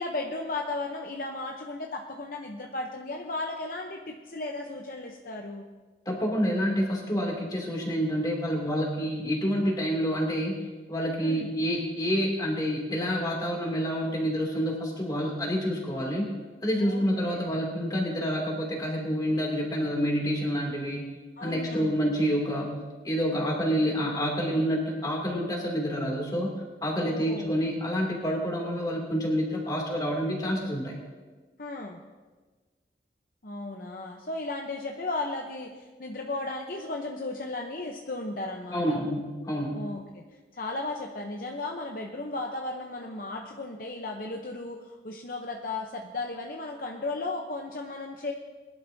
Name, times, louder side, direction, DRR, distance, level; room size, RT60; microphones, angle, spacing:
voice 1, 0.0-5.7 11.2-11.5 16.8-17.5 21.4-22.0 27.0-27.6 31.6-32.0 33.4-39.0 39.7-40.2 40.5-48.3, left 2 dB, 50° left, 1 dB, 0.8 m, -35 dB
voice 2, 6.1-10.6 10.9-16.3 16.6-21.1 21.4-26.5 26.8-30.9 38.7-39.8, equal, 20° left, -1 dB, 2.7 m, -28 dB
21.5 x 11.5 x 2.8 m, 1.3 s
head